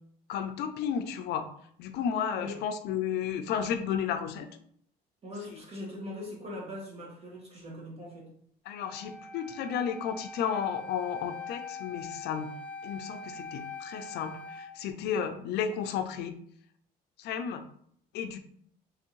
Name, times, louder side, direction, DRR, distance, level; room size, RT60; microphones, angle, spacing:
voice 1, 0.3-1.5 1.8-4.5 5.5-5.6 8.7-12.6 12.8-16.3 17.2-17.7 18.1-18.4, left 8 dB, 80° left, 8 dB, 0.5 m, -33 dB
voice 2, 5.2-8.3, left 1 dB, 35° right, -3 dB, 1.6 m, -41 dB
Wind instrument woodwind instrument, 8.8-14.7, left 3 dB, 10° left, 0.4 m, -43 dB
3.5 x 3.4 x 3.1 m, 0.65 s
cardioid pair, 110°, 17 cm